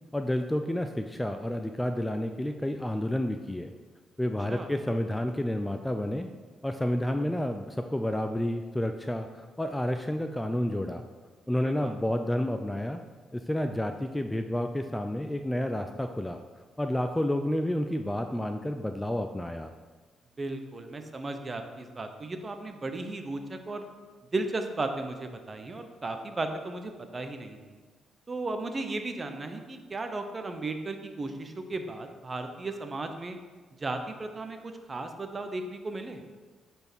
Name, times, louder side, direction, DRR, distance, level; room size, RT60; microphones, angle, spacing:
voice 1, 0.1-3.7 4.2-6.3 6.6-11.0 11.5-13.0 13.3-16.4 16.8-19.7, left 1 dB, 10° left, 6 dB, 0.5 m, -30 dB
voice 2, 11.6-11.9 20.4-23.9 24.3-27.8 28.3-33.4 33.8-36.2, right 2 dB, 30° right, 6 dB, 0.9 m, -35 dB
8.6 x 4.5 x 6.2 m, 1.4 s
cardioid pair, 90°, 0 cm